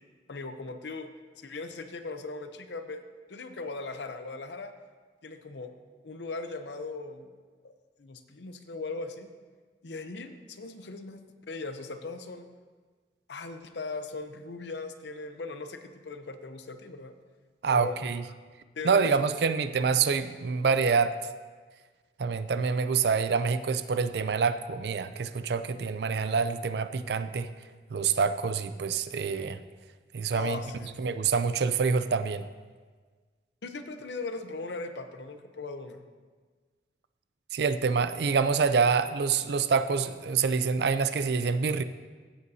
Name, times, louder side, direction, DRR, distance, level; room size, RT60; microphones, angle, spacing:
voice 1, 0.3-1.1 1.4-3.0 3.3-4.7 5.2-5.7 6.0-7.3 8.0-9.3 9.8-12.5 13.3-17.1 17.7-18.1 18.7-19.7 30.3-31.0 33.6-36.0, left 3 dB, 80° left, 8 dB, 0.7 m, -39 dB
voice 2, 17.6-18.2 18.8-21.1 22.2-27.5 27.9-29.6 30.1-30.6 31.0-32.5 37.5-41.8, right 5 dB, 65° right, 11 dB, 0.4 m, -26 dB
15.5 x 8.1 x 2.8 m, 1.5 s
head